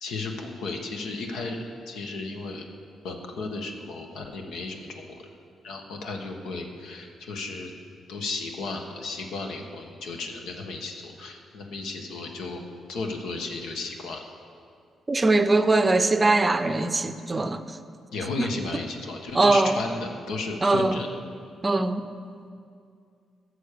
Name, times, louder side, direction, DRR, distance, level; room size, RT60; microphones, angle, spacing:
voice 1, 0.0-2.7 3.0-5.3 5.6-7.7 8.1-14.2 18.1-21.1, left 3 dB, 85° left, 1.4 m, -34 dB
voice 2, 15.1-17.6 18.4-18.5 19.3-19.8 20.6-21.0 21.6-22.0, right 2 dB, 25° right, 0.5 m, -21 dB
14.5 x 6.5 x 6.8 m
cardioid pair, 100°, 0 cm